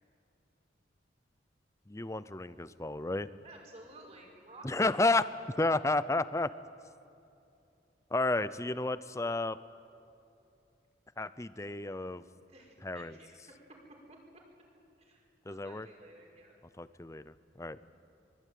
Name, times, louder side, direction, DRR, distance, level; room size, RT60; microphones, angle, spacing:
voice 1, 1.9-3.3 4.6-5.3 5.6-6.5 8.1-9.6 11.2-12.2 12.8-13.1 15.5-15.9 16.8-17.8, left 2 dB, 15° left, 14 dB, 0.6 m, -31 dB
voice 2, 3.4-5.0 12.4-13.6 14.1-14.2 15.0-16.6 17.8-18.1, right 1 dB, 35° right, 0 dB, 5.5 m, -54 dB
24.0 x 22.0 x 9.4 m, 2.7 s
head